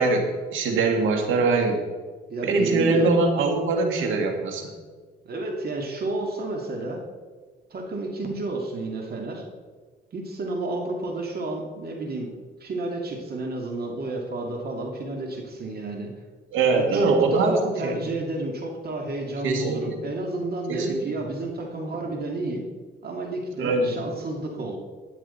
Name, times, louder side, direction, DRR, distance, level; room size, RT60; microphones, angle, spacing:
voice 1, 0.0-1.8 2.4-4.7 16.5-18.0 19.4-20.0 20.7-21.1 23.6-24.0, right 3 dB, 85° right, 3 dB, 2.0 m, -23 dB
voice 2, 2.3-3.3 5.2-7.0 7.7-9.4 10.1-12.3 12.6-16.1 16.7-22.6 23.0-24.8, right 2 dB, 50° right, 2 dB, 2.1 m, -31 dB
12.5 x 9.1 x 4.3 m, 1.5 s
cardioid pair, 90°, 20 cm